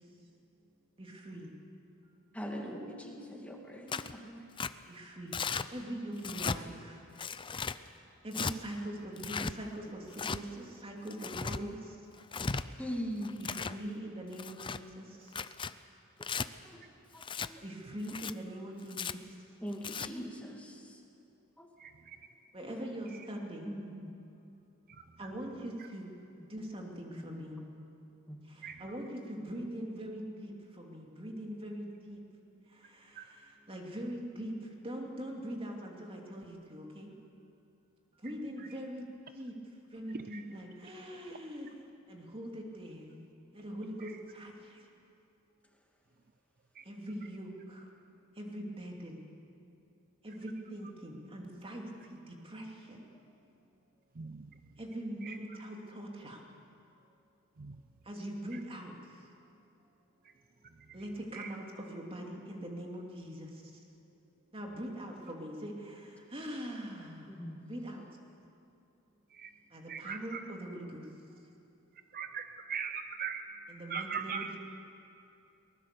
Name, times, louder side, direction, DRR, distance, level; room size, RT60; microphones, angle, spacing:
voice 1, 1.0-1.5 4.9-5.4 5.7-7.0 8.2-12.0 13.4-15.3 17.6-19.3 22.5-23.8 25.2-26.1 26.5-27.6 28.5-32.2 32.7-37.1 38.2-39.5 39.9-41.7 42.1-43.2 43.5-44.8 46.8-47.9 48.4-49.2 50.2-53.0 54.8-56.4 58.0-58.9 60.9-63.6 64.5-67.4 67.7-68.0 69.7-71.1 73.7-74.6, right 1 dB, 25° right, 0 dB, 2.8 m, -42 dB
voice 2, 2.3-4.4 12.8-13.3 16.6-16.8 17.5-17.6 19.6-20.8 21.6-21.7 23.7-23.9 27.3-27.7 28.3-28.4 67.3-67.6, equal, 5° left, 0 dB, 2.2 m, -41 dB
Tearing, 3.9-4.1 4.6-4.7 5.3-5.7 6.2-6.6 7.2-7.8 8.3-8.5 9.2-9.5 10.1-10.4 11.1-11.6 12.2-12.6 13.2-13.8 14.3-14.8 15.3-15.7 16.2-16.5 17.2-17.5 18.0-18.3 18.9-19.1 19.7-20.1, left 5 dB, 25° left, 0.5 m, -36 dB
voice 3, 21.8-22.2 23.1-23.3 24.9-25.3 25.8-25.9 28.6-28.8 33.2-33.3 38.6-38.7 40.1-40.4 44.0-44.2 46.7-46.9 54.2-54.6 55.2-55.6 57.6-57.8 58.5-58.6 60.8-61.0 61.3-61.5 69.3-69.5 69.9-70.4 72.1-73.4 73.9-74.5, right 6 dB, 40° right, 9 dB, 0.6 m, -41 dB
22.5 x 20.0 x 6.9 m, 2.7 s
head